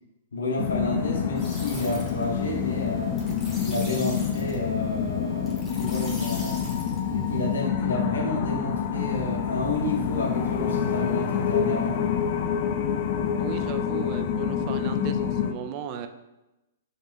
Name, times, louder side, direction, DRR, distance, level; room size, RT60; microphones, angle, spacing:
voice 1, 0.3-3.2 3.6-6.6 7.1-12.0, left 1 dB, 80° left, -1 dB, 0.8 m, -30 dB
sound 1, 0.6-15.5, left 8 dB, 45° left, 0.4 m, -27 dB
sound 2, 1.4-7.7, left 1 dB, 10° left, 1.2 m, -41 dB
voice 2, 13.4-16.1, right 8 dB, 40° right, 8 dB, 0.4 m, -36 dB
5.3 x 2.9 x 2.5 m, 0.97 s
hypercardioid pair, 125°, 0 cm